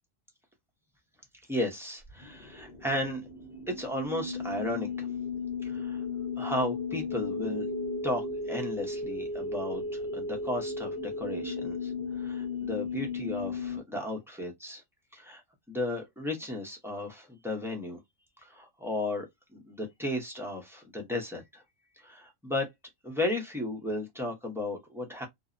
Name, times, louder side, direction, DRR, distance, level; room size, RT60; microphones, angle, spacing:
voice 1, 1.5-3.2 3.7-5.1 5.6-6.1 6.4-7.7 8.0-14.8 15.1-15.4 15.7-18.0 18.4-19.3 19.5-21.6 22.0-22.7 23.0-25.3, left 1 dB, 5° right, 0.4 m, -34 dB
sound 1, 2.1-13.8, left 3 dB, 55° left, 0.9 m, -35 dB
2.6 x 2.0 x 2.4 m
omnidirectional pair, 1.4 m